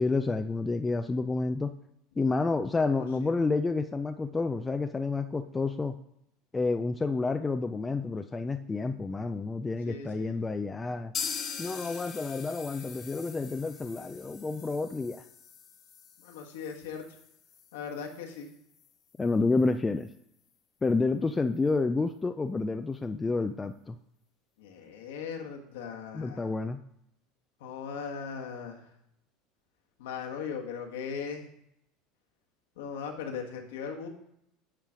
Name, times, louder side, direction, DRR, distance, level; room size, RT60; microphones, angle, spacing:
voice 1, 0.0-1.7 2.2-5.9 6.5-11.1 11.6-15.2 19.2-20.1 20.8-24.0 26.1-26.8, left 3 dB, 15° left, 7 dB, 0.4 m, -29 dB
voice 2, 9.8-10.3 16.2-17.0 17.7-18.5 24.6-26.5 27.6-28.8 30.0-31.4 32.8-34.1, left 6 dB, 85° left, 1 dB, 1.4 m, -38 dB
sound 1, 11.1-18.9 19.2-19.3 19.6-19.7 20.1-20.2, left 7 dB, 40° left, 1.1 m, -42 dB
9.0 x 3.1 x 5.0 m, 0.77 s
supercardioid pair, 110°, 0 cm